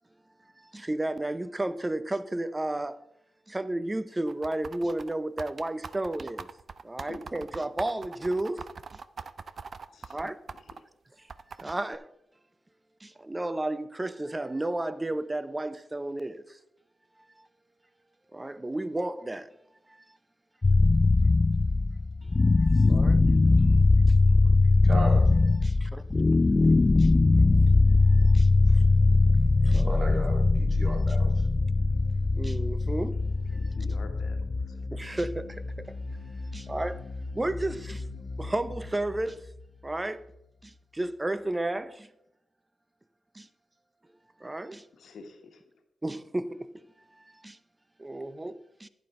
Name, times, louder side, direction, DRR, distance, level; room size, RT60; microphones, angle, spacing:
voice 1, 0.7-3.0 3.5-6.5 6.8-8.6 10.1-10.4 11.6-12.0 13.0-16.4 18.3-19.5 22.7-23.2 25.6-26.0 27.0-27.1 28.3-28.5 29.6-30.0 30.9-31.2 32.4-33.2 34.9-35.5 36.5-37.0 37.3-38.0 38.4-39.4 39.8-40.2 40.9-42.1 43.4-43.5 44.4-44.8 46.0-46.7 47.4-47.6 48.0-48.9, right 1 dB, 20° right, 0.7 m, -32 dB
sound 1, 4.3-10.8 11.3-12.0, right 5 dB, 60° right, 0.5 m, -41 dB
voice 2, 7.0-7.3 10.5-10.9 33.5-34.8 44.9-45.6, left 4 dB, 80° left, 1.4 m, -48 dB
sound 2, 20.6-34.7, left 3 dB, 30° left, 0.3 m, -21 dB
voice 3, 24.8-25.3 29.7-31.3, right 1 dB, 40° right, 2.0 m, -35 dB
sound 3, 27.4-40.7, left 2 dB, 55° left, 1.5 m, -38 dB
11.0 x 9.5 x 3.8 m
cardioid pair, 70°, 0 cm